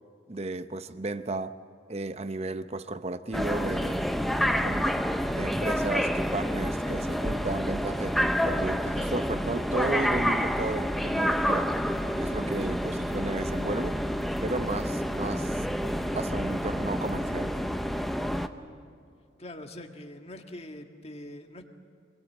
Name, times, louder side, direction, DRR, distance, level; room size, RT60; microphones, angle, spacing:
voice 1, 0.3-1.6 1.9-4.1 4.6-5.0 5.3-11.7 12.1-14.0 14.4-15.6 16.1-17.5, right 2 dB, 35° right, 0.8 m, -34 dB
sound 1, 3.3-18.5, equal, ahead, 0.7 m, -28 dB
voice 2, 19.4-21.6, left 1 dB, 35° left, 1.7 m, -43 dB
25.5 x 20.5 x 8.5 m
head